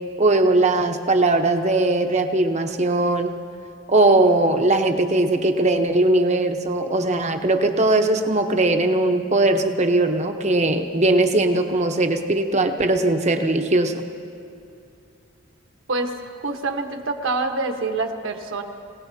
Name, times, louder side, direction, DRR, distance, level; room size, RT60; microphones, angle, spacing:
voice 1, 0.2-3.3 3.9-14.1, right 2 dB, 35° right, 5 dB, 0.9 m, -19 dB
voice 2, 15.9-18.6, right 3 dB, 70° right, 3 dB, 1.2 m, -26 dB
26.5 x 17.5 x 2.8 m, 2.5 s
head